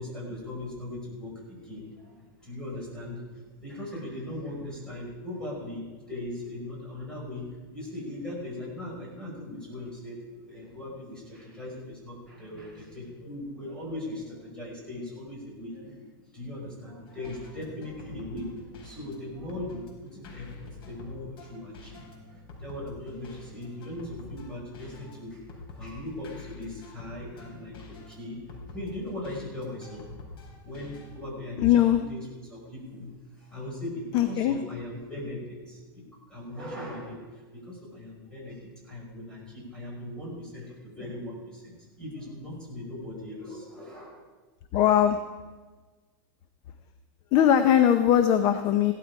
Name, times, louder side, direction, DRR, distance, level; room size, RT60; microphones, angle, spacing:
voice 1, 0.0-16.0 16.3-25.5 25.8-30.0 30.4-44.2, left 1 dB, 5° left, -5 dB, 5.5 m, -39 dB
sound 1, 17.0-31.1, left 3 dB, 70° left, 4.7 m, -47 dB
voice 2, 31.6-32.0 34.1-34.6 44.7-45.2 47.3-48.9, left 10 dB, 35° left, 9 dB, 0.7 m, -20 dB
16.5 x 12.5 x 4.8 m, 1.3 s
supercardioid pair, 160°, 12 cm